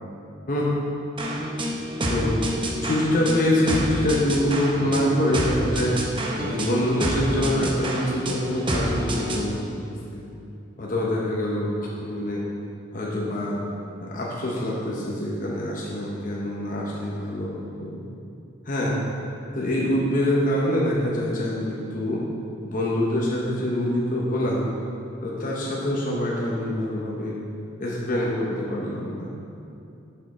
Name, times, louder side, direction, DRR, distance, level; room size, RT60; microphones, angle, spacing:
sound 1, 1.2-9.5, equal, 25° right, 0.7 m, -28 dB
voice 1, 2.8-5.9 6.4-10.2 10.8-11.7 12.0-12.4 12.9-13.6 14.0-18.0 18.6-19.0 19.5-22.2 22.6-24.7 25.2-27.3 27.8-29.3, left 1 dB, 40° left, -4 dB, 0.9 m, -25 dB
7.3 x 5.2 x 4.9 m, 2.7 s
head